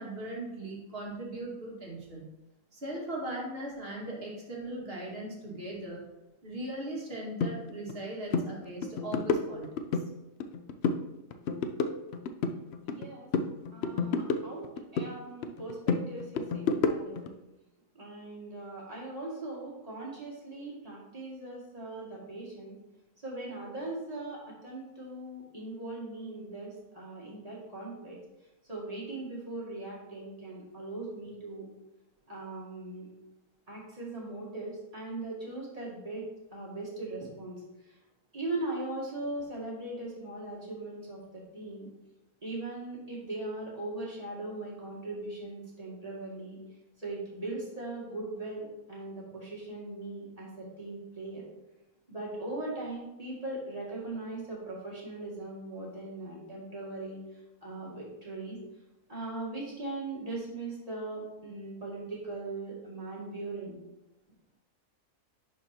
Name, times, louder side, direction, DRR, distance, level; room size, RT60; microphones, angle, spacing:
voice 1, 0.0-2.3 2.7-6.1 6.4-10.0, right 1 dB, 40° right, -3 dB, 1.9 m, -39 dB
sound 1, 7.4-7.5 7.9-8.0 8.3-8.5 8.8-10.1 10.4-11.0 11.3-13.1 13.3-15.1 15.4-17.3, left 4 dB, 70° left, 0.6 m, -30 dB
voice 2, 12.8-13.3 13.7-14.7 14.9-17.3 17.9-22.7 23.2-28.2 28.7-31.7 32.3-33.1 33.7-37.6 38.3-41.9 42.4-46.6 47.0-51.4 52.1-57.2 57.6-58.6 59.1-63.8, right 2 dB, 25° right, -6 dB, 2.1 m, -39 dB
11.0 x 4.7 x 2.8 m, 0.96 s
omnidirectional pair, 1.6 m